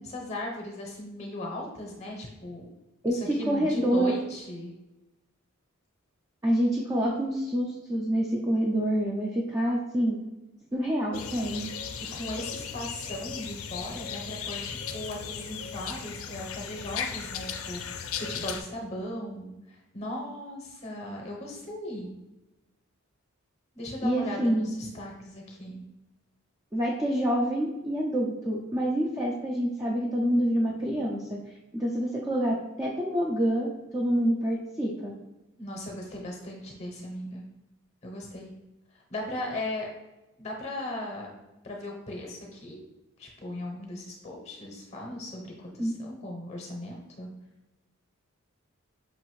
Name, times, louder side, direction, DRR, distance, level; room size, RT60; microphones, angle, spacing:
voice 1, 0.0-2.7 3.1-4.7 12.1-22.1 23.7-25.8 35.6-37.4 38.0-38.5 39.1-39.9 40.4-41.3 41.6-42.8 43.2-47.3, left 1 dB, 30° left, 0 dB, 0.7 m, -37 dB
voice 2, 3.0-4.1 6.4-10.2 10.7-11.7 24.0-24.7 26.7-31.4 31.7-33.7 33.9-35.1 45.8-45.9, equal, 15° right, -3 dB, 0.4 m, -27 dB
sound 1, 11.1-18.6, left 7 dB, 70° left, 0.4 m, -37 dB
5.5 x 2.5 x 3.0 m, 1.0 s
head